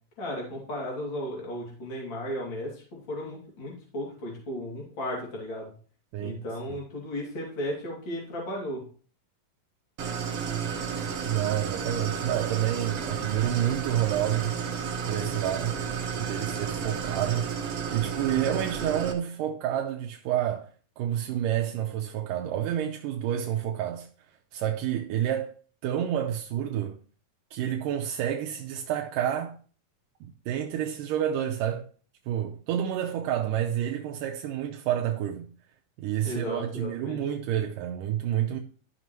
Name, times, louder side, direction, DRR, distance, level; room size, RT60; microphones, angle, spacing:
voice 1, 0.2-5.7 6.2-8.8 36.2-37.2, equal, 35° left, 3.0 m, -35 dB
Idling, 10.0-19.1, right 7 dB, 65° right, 1.5 m, -32 dB
voice 2, 11.2-14.5 15.1-15.8 16.1-17.7 17.9-20.7 21.0-24.1 24.5-25.5 25.8-27.0 27.5-29.6 30.2-31.9 32.3-35.5 36.0-38.6, right 10 dB, 80° right, 2.0 m, -29 dB
12.5 x 5.8 x 3.1 m
omnidirectional pair, 4.2 m